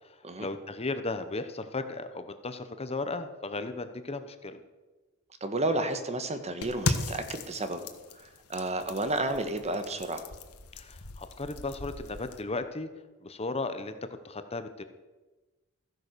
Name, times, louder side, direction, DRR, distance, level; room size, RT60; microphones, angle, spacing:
voice 1, 0.0-4.6 10.7-12.9 13.2-14.0 14.2-14.8, left 3 dB, 30° left, 10 dB, 0.9 m, -35 dB
voice 2, 5.4-7.8 8.2-10.2, right 2 dB, 30° right, 8 dB, 1.4 m, -31 dB
sound 1, 6.6-12.4, left 3 dB, 80° left, 1.4 m, -37 dB
15.5 x 10.5 x 6.8 m, 1.2 s
head